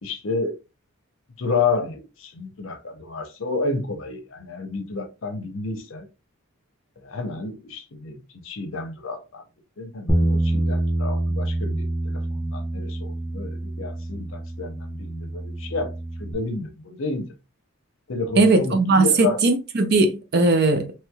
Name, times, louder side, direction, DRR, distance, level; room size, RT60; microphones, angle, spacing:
voice 1, 0.0-0.6 1.4-6.1 7.0-9.4 9.8-15.9 16.2-17.3 18.1-19.4, left 3 dB, 60° left, 0.7 m, -30 dB
Bass guitar, 10.1-16.3, right 1 dB, 10° left, 0.6 m, -26 dB
voice 2, 18.4-21.1, right 3 dB, 50° right, 0.5 m, -19 dB
3.1 x 3.1 x 2.2 m
head